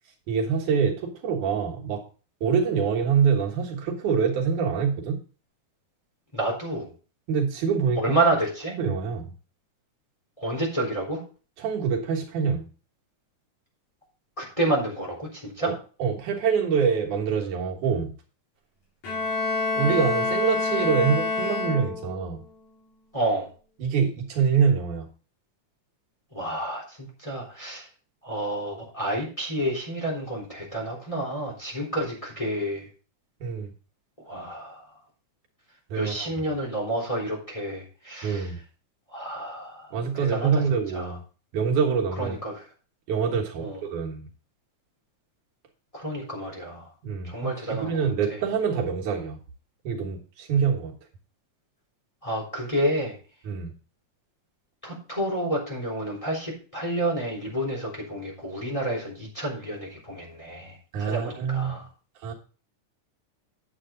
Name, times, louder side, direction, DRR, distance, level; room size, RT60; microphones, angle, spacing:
voice 1, 0.3-2.0 2.4-5.2 7.3-8.2 8.8-9.3 11.6-12.7 15.6-15.7 16.0-18.1 19.7-22.4 23.8-25.1 33.4-33.7 35.9-36.3 38.2-38.6 39.9-41.2 41.5-42.4 43.1-44.3 47.0-49.4 49.8-50.9 53.4-53.7 60.9-61.8 62.2-62.3, right 6 dB, 75° right, 0 dB, 2.9 m, -25 dB
voice 2, 6.3-6.9 8.0-8.8 10.4-11.2 14.4-15.7 23.1-23.5 26.3-27.9 28.2-32.9 34.3-34.8 35.9-38.5 39.1-40.5 40.9-41.2 42.2-42.6 43.6-43.8 45.9-46.9 47.2-47.9 52.2-53.1 54.8-61.8, right 1 dB, 10° left, -1 dB, 3.5 m, -29 dB
Bowed string instrument, 19.0-22.3, left 3 dB, 65° left, 5.3 m, -27 dB
9.6 x 7.9 x 3.8 m, 0.36 s
omnidirectional pair, 3.5 m